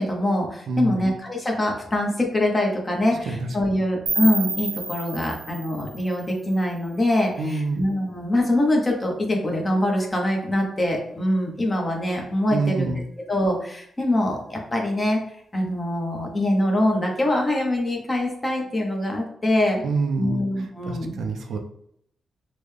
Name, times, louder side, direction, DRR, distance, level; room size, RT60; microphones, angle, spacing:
voice 1, 0.0-12.9 13.3-15.2 15.5-19.8 20.2-21.1, left 1 dB, 20° left, 0 dB, 0.9 m, -24 dB
voice 2, 0.7-1.0 3.3-3.6 7.4-7.8 12.5-13.0 19.8-21.6, right 3 dB, 75° right, 5 dB, 0.5 m, -27 dB
sound 1, 4.1-7.0, right 2 dB, 35° right, 0.9 m, -31 dB
3.7 x 2.2 x 3.3 m, 0.70 s
wide cardioid pair, 135°, 0 cm